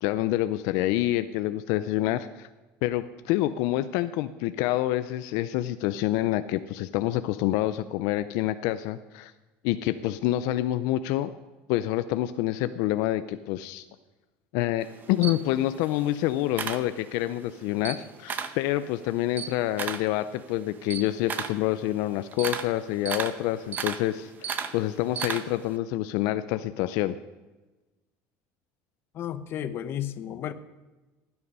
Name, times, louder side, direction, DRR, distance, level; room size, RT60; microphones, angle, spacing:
voice 1, 0.0-2.5 2.8-9.3 9.6-11.3 11.7-13.8 14.5-27.1, left 14 dB, 70° left, 11 dB, 0.5 m, -27 dB
Camera, 14.8-17.4 17.7-18.6 19.0-25.7, right 7 dB, 30° right, 1.0 m, -35 dB
voice 2, 29.1-30.5, left 10 dB, 40° left, 12 dB, 0.8 m, -33 dB
16.5 x 9.7 x 5.5 m, 1.2 s
cardioid pair, 155°, 6 cm